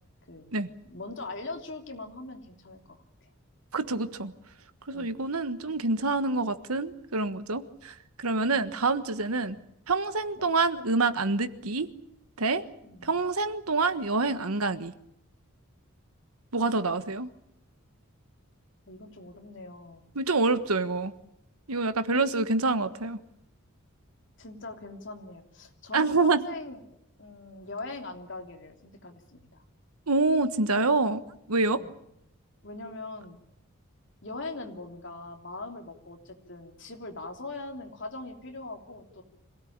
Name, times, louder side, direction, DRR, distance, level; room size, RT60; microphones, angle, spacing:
voice 1, 0.9-3.3 4.9-5.1 8.4-8.9 9.5-9.6 10.4-10.5 12.8-13.3 16.5-17.0 18.9-20.0 22.1-22.4 24.4-26.8 27.2-29.6 31.7-32.0 32.6-33.4 34.2-39.2, left 2 dB, 55° left, 3 dB, 3.2 m, -41 dB
voice 2, 3.7-4.3 4.9-9.6 9.9-11.9 12.4-12.6 13.0-14.9 16.5-17.3 20.1-21.1 21.7-23.2 25.9-26.4 30.1-31.2 31.5-31.8, right 3 dB, 85° right, 11 dB, 1.4 m, -26 dB
26.0 x 17.5 x 8.8 m, 0.78 s
head